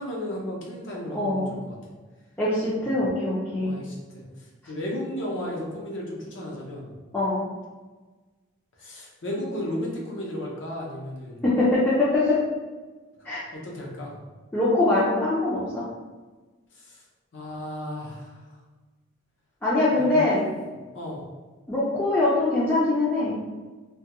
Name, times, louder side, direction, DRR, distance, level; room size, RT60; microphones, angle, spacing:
voice 1, 0.0-1.8 2.8-2.9 3.6-6.9 8.8-11.4 13.5-14.2 16.8-17.0 17.3-18.4 19.9-20.4 20.7-21.2, left 1 dB, 65° left, -3 dB, 0.6 m, -34 dB
voice 2, 1.1-1.5 2.4-3.7 7.1-7.4 11.4-12.4 13.3-13.4 14.5-15.8 19.6-20.4 21.7-23.3, left 2 dB, 10° left, -10 dB, 0.4 m, -23 dB
2.2 x 2.2 x 2.8 m, 1.3 s
head